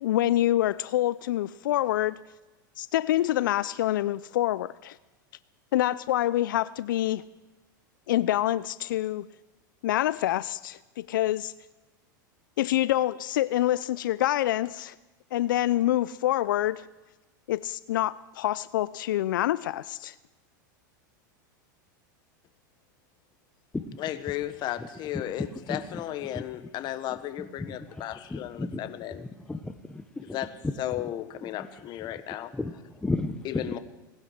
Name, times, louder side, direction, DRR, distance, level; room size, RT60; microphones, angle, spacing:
voice 1, 0.0-2.2 2.8-5.0 5.7-7.2 8.1-9.2 9.8-11.5 12.6-14.9 15.3-16.9 17.5-20.1, left 14 dB, 80° left, 0.4 m, -26 dB
voice 2, 24.0-29.3 30.2-32.5 33.4-33.8, left 13 dB, 45° left, 1.3 m, -35 dB
voice 3, 28.3-28.8 29.5-30.4 30.6-30.7 32.5-32.7 33.0-33.3, left 2 dB, 10° left, 1.0 m, -32 dB
19.0 x 11.0 x 6.4 m
hypercardioid pair, 115°, 11 cm